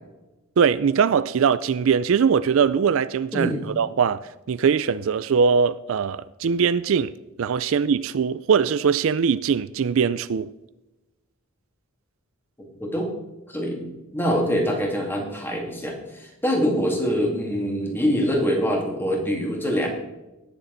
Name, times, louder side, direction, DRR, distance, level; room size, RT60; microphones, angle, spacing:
voice 1, 0.6-4.2 4.5-7.1 7.4-10.5, right 6 dB, 60° right, 0.4 m, -21 dB
voice 2, 12.6-13.1 13.5-19.9, equal, 10° left, 2.3 m, -24 dB
19.0 x 7.0 x 4.0 m
head